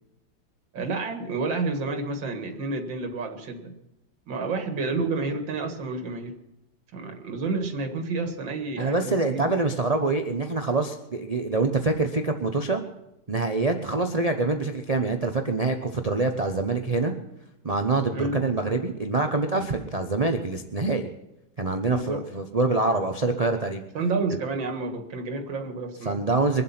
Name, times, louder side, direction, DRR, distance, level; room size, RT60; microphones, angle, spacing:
voice 1, 0.7-3.7 4.3-6.4 6.9-9.5 18.1-18.4 21.8-22.3 23.9-26.2, right 3 dB, 80° right, 5 dB, 2.5 m, -30 dB
voice 2, 8.8-12.8 13.3-17.1 17.6-21.1 21.6-23.8 24.3-24.4 26.0-26.6, right 3 dB, 30° right, 5 dB, 0.7 m, -25 dB
23.5 x 7.9 x 5.8 m, 0.89 s
omnidirectional pair, 2.0 m